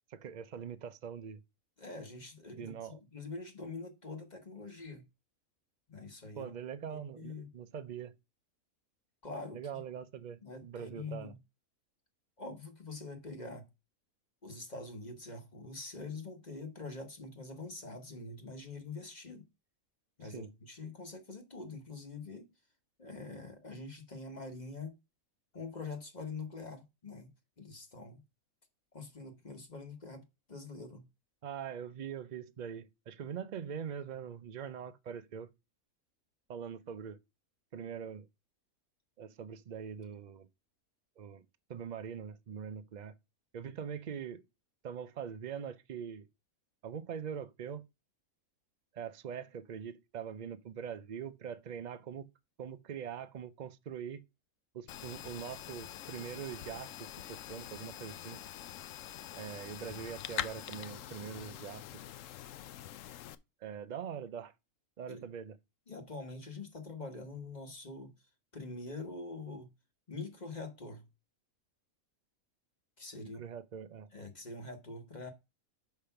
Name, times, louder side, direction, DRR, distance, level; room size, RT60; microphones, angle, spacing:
voice 1, 0.1-1.4 2.6-3.0 6.4-8.1 9.5-11.3 20.2-20.5 31.4-35.5 36.5-37.2 37.7-38.3 39.2-40.5 41.2-41.4 41.7-43.1 43.5-44.4 44.8-46.3 46.8-47.8 48.9-52.2 52.6-54.2 54.7-58.4 59.3-61.8 63.6-64.5 65.0-65.6 73.2-74.1, right 8 dB, 60° right, 0.4 m, -43 dB
voice 2, 1.8-2.8 3.1-5.0 5.9-6.5 6.9-7.5 9.2-9.6 10.4-11.4 12.4-13.7 14.4-19.4 20.2-22.5 23.0-24.9 25.5-28.2 28.9-30.2 30.5-31.0 65.1-65.2 65.9-68.1 68.5-69.7 70.1-71.0 73.0-73.4 74.1-75.3, left 3 dB, 30° left, 1.3 m, -44 dB
sound 1, 54.9-63.3, left 11 dB, 70° left, 0.9 m, -44 dB
5.7 x 5.1 x 5.7 m
omnidirectional pair, 1.5 m